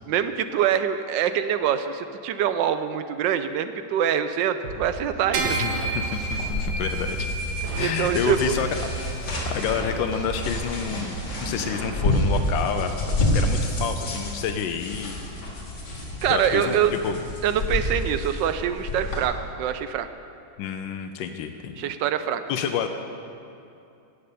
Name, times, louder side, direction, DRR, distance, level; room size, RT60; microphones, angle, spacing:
voice 1, 0.1-5.7 7.8-8.5 16.2-17.0 17.4-20.1 21.8-22.4, right 9 dB, 75° right, 11 dB, 1.1 m, -24 dB
sound 1, 4.6-12.6, right 2 dB, 55° right, 1.8 m, -37 dB
sound 2, 5.3-11.0, right 2 dB, 90° right, 2.3 m, -32 dB
voice 2, 5.4-7.3 7.7-8.7 9.1-12.9 13.3-15.2 16.3-17.2 20.6-21.9 22.5-22.9, left 7 dB, 75° left, 6 dB, 1.3 m, -29 dB
sound 3, 6.3-19.2, left 1 dB, 50° left, 2.6 m, -29 dB
17.0 x 6.6 x 6.8 m, 2.6 s
omnidirectional pair, 2.3 m